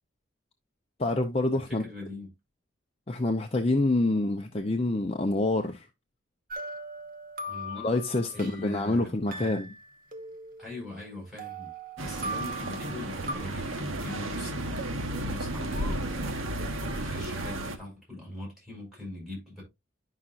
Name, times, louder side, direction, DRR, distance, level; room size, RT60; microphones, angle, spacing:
voice 1, 1.0-1.8 3.1-5.9 7.8-9.7, left 2 dB, 30° left, 0.7 m, -27 dB
voice 2, 1.7-2.3 7.5-7.9 8.3-9.6 10.6-11.7 12.0-19.6, left 2 dB, ahead, 6.2 m, -41 dB
sound 1, 6.5-8.8 9.3-11.1 11.4-13.3, right 1 dB, 45° right, 1.1 m, -39 dB
sound 2, 12.0-17.8, right 1 dB, 85° right, 1.1 m, -33 dB
11.0 x 5.7 x 2.5 m
head